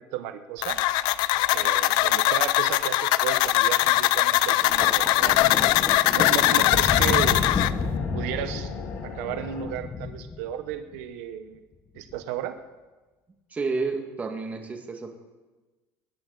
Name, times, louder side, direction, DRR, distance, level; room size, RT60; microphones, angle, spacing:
voice 1, 0.1-0.8 1.5-5.4 6.1-7.5 8.1-8.7 9.0-11.6 11.9-12.6, right 11 dB, 85° right, 8 dB, 1.0 m, -33 dB
sound 1, 0.6-7.7, left 16 dB, 65° left, 0.5 m, -21 dB
Thunder, 4.6-11.0 12.0-12.2, left 5 dB, 25° left, 1.0 m, -31 dB
sound 2, 5.0-9.7, left 6 dB, 80° left, 2.5 m, -39 dB
voice 2, 13.5-15.1, right 4 dB, 20° right, 3 dB, 1.8 m, -30 dB
22.0 x 11.0 x 4.0 m, 1.2 s
cardioid pair, 145°, 8 cm